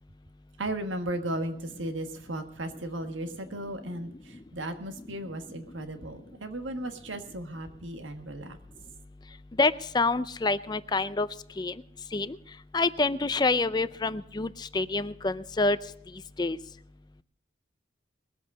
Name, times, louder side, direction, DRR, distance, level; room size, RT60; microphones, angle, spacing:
voice 1, 0.6-8.6, right 1 dB, 85° right, 6 dB, 1.5 m, -35 dB
voice 2, 9.6-11.3 11.6-11.7 12.1-12.4 12.7-15.8 16.4-16.6, left 3 dB, 20° left, 14 dB, 0.4 m, -27 dB
21.0 x 8.1 x 5.4 m, 0.72 s
head